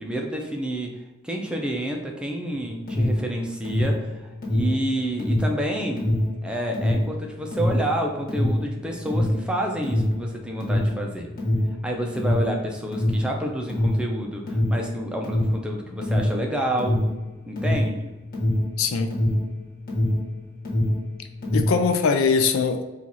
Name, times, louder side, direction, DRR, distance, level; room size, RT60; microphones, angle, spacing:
voice 1, 0.0-6.1 6.4-11.3 11.8-17.0 17.5-18.1, right 1 dB, 5° right, 1 dB, 0.5 m, -29 dB
Alarm, 2.7-20.3 20.6-21.9, left 1 dB, 45° left, 1.4 m, -24 dB
voice 2, 18.8-19.2 21.5-22.8, left 5 dB, 70° left, 6 dB, 0.4 m, -21 dB
4.5 x 2.4 x 4.0 m, 1.1 s
head